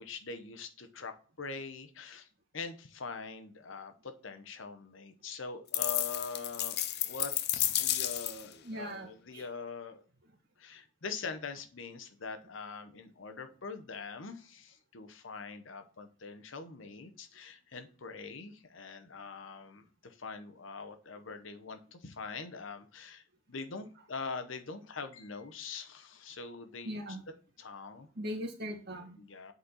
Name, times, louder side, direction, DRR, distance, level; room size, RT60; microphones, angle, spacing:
voice 1, 0.0-2.3 2.5-10.0 10.6-27.0 27.6-28.1 29.2-29.5, left 4 dB, 70° left, 8 dB, 0.9 m, -43 dB
sound 1, 5.7-8.5, left 13 dB, 55° left, 0.5 m, -32 dB
voice 2, 8.6-9.5 26.8-27.2 28.2-29.2, equal, 55° right, 1 dB, 1.8 m, -40 dB
7.9 x 4.2 x 4.1 m, 0.42 s
head